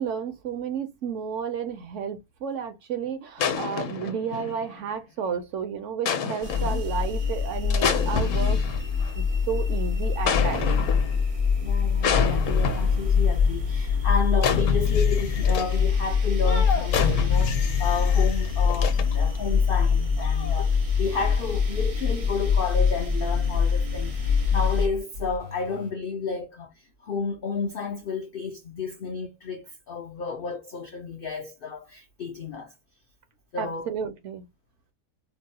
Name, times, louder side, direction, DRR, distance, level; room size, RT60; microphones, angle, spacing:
voice 1, 0.0-8.6 9.2-10.8 33.6-34.4, right 7 dB, 65° right, 0.9 m, -32 dB
sound 1, 3.4-4.8 6.1-6.9 7.7-9.1 10.3-11.2 12.0-13.1 14.4-15.8 16.4-19.4 20.2-20.6, left 6 dB, 65° left, 1.0 m, -28 dB
sound 2, 6.4-24.9, left 6 dB, 50° right, 0.4 m, -24 dB
voice 2, 11.6-32.7 33.5-33.9, left 4 dB, 80° left, 0.5 m, -32 dB
sound 3, 13.9-14.3 15.1-16.1 16.4-17.3 18.1-20.3 20.9-22.0 22.4-23.3 23.9-25.9, left 3 dB, 85° right, 2.1 m, -39 dB
4.5 x 2.1 x 2.7 m
omnidirectional pair, 1.6 m